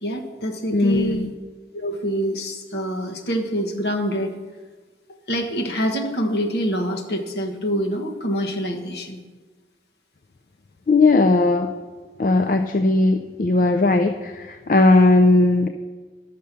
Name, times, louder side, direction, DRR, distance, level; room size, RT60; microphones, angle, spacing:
voice 1, 0.0-1.3 1.7-4.3 5.3-9.2, equal, 65° left, 2 dB, 1.4 m, -26 dB
voice 2, 0.7-1.3 10.9-11.7 12.2-15.7, left 2 dB, 50° left, 7 dB, 0.4 m, -17 dB
11.5 x 6.7 x 6.7 m, 1.4 s
head